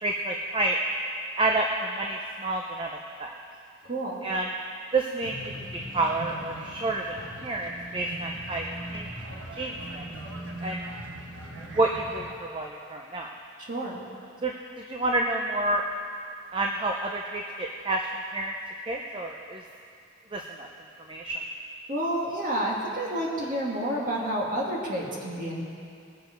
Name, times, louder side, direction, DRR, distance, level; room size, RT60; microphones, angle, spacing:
voice 1, 0.0-0.8 1.4-2.9 3.2-3.3 4.2-4.5 4.9-5.4 5.7-7.1 7.4-9.1 9.5-10.0 10.6-10.8 11.8-13.3 14.4-14.5 14.9-15.8 16.5-18.5 18.9-19.6 20.3-20.7 21.1-21.4, right 2 dB, 25° right, 1 dB, 0.6 m, -29 dB
voice 2, 3.8-4.2 13.6-14.0 21.9-25.6, right 1 dB, 40° right, -3 dB, 2.2 m, -29 dB
sound 1, 5.2-12.3, right 1 dB, 75° right, 1.3 m, -40 dB
20.0 x 6.9 x 5.2 m, 2.4 s
head